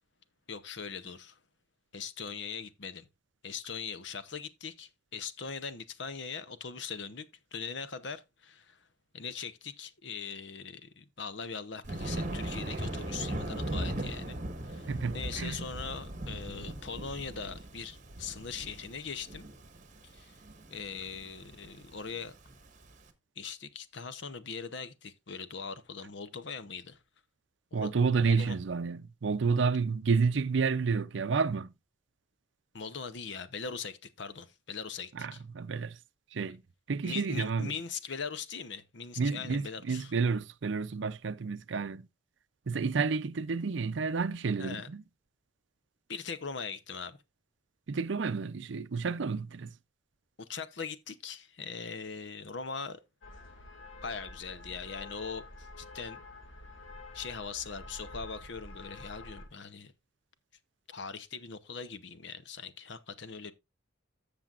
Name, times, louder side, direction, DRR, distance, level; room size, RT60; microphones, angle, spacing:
voice 1, 0.5-1.4 1.9-3.1 3.4-8.9 9.1-14.4 14.7-14.9 15.1-19.5 20.0-20.4 20.7-22.4 23.4-27.0 27.7-28.6 32.7-35.4 37.0-40.1 44.6-44.9 46.1-47.2 50.4-53.0 54.0-56.2 57.1-59.9 60.9-63.5, left 5 dB, 60° left, 0.8 m, -41 dB
Thunder, 11.8-22.9, right 1 dB, 40° right, 1.3 m, -38 dB
voice 2, 14.9-15.7 27.7-31.7 35.1-36.0 36.3-36.6 36.9-37.8 39.2-42.1 42.7-45.0 47.9-49.7, right 5 dB, 65° right, 0.5 m, -30 dB
sound 1, 53.2-59.5, left 2 dB, 85° left, 2.0 m, -48 dB
13.5 x 6.8 x 2.5 m
head